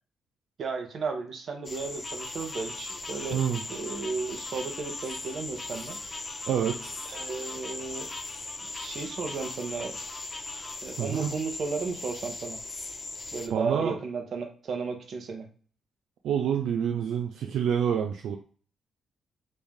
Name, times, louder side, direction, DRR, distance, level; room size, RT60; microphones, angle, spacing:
voice 1, 0.6-3.4 3.7-6.0 7.1-8.1 8.7-10.0 10.8-12.6 13.3-15.5, right 4 dB, 60° right, 3 dB, 0.9 m, -34 dB
sound 1, 1.6-13.5, left 3 dB, 30° left, 0.5 m, -38 dB
voice 2, 3.3-3.6 6.5-7.0 11.0-11.3 13.5-14.0 16.2-18.4, right 8 dB, 85° right, 3 dB, 0.4 m, -27 dB
3.2 x 2.6 x 3.6 m, 0.42 s
cardioid pair, 95°, 0 cm